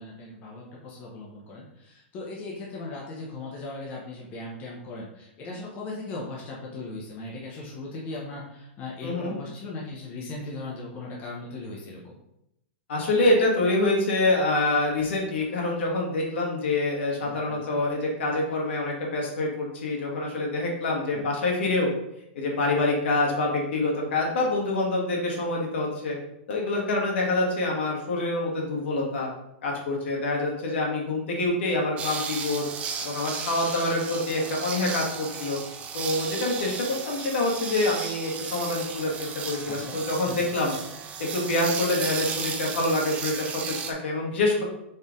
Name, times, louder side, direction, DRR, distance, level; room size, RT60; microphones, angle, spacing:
voice 1, 0.0-12.1 17.2-17.8 21.1-21.2 39.7-40.0 40.2-40.4, left 2 dB, 30° left, -3 dB, 0.8 m, -38 dB
voice 2, 9.0-9.3 12.9-21.9 22.3-26.2 26.5-29.3 29.6-32.6 33.0-35.6 35.9-40.7 41.3-44.6, left 2 dB, 70° left, -1 dB, 1.5 m, -26 dB
sound 1, 32.0-43.9, right 6 dB, 20° right, 0.4 m, -34 dB
4.3 x 3.2 x 3.7 m, 0.81 s
supercardioid pair, 155°, 6 cm